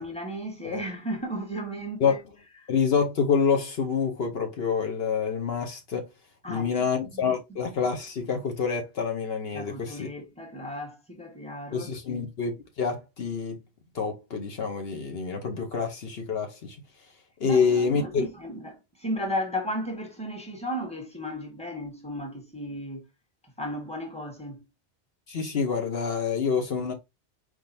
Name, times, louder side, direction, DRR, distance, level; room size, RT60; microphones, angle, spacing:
voice 1, 0.0-2.2 2.6-2.7 6.4-7.3 9.5-12.2 17.4-23.0 23.6-24.7, equal, 5° left, 1.3 m, -35 dB
voice 2, 2.7-6.1 6.5-10.1 11.7-13.6 13.9-16.8 17.4-18.3 25.3-26.9, left 6 dB, 65° left, 1.0 m, -27 dB
4.6 x 3.8 x 2.6 m
omnidirectional pair, 1.1 m